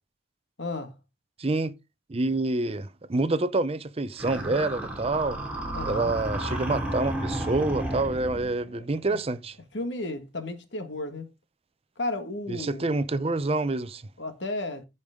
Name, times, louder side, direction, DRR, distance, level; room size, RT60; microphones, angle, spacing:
voice 1, 0.6-0.9 5.7-6.2 8.7-8.8 9.1-9.2 9.7-11.3 12.0-12.9 14.2-14.9, left 2 dB, 70° left, 1.7 m, -33 dB
voice 2, 1.4-1.7 2.1-5.4 5.9-9.5 12.5-14.0, right 2 dB, 30° right, 0.6 m, -27 dB
sound 1, 4.2-8.5, right 1 dB, 5° right, 3.1 m, -32 dB
15.0 x 5.3 x 3.6 m
head